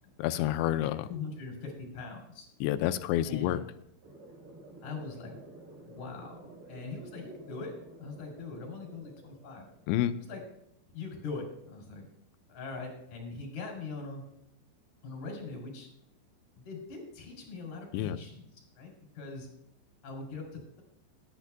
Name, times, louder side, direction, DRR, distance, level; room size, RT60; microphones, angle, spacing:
voice 1, 0.2-1.1 2.6-3.6 9.9-10.2 17.9-18.2, left 12 dB, 85° left, 10 dB, 2.9 m, -29 dB
voice 2, 0.8-2.5 3.2-3.6 4.8-5.3 5.9-7.7 8.0-9.7 10.2-10.4 10.9-12.1 12.5-14.2 15.0-15.9 16.6-19.5 20.0-20.8, left 4 dB, 45° left, 0 dB, 3.9 m, -42 dB
sound 1, 4.0-10.0, right 2 dB, 55° right, 5.8 m, -51 dB
19.0 x 10.0 x 2.2 m, 0.80 s
omnidirectional pair, 5.1 m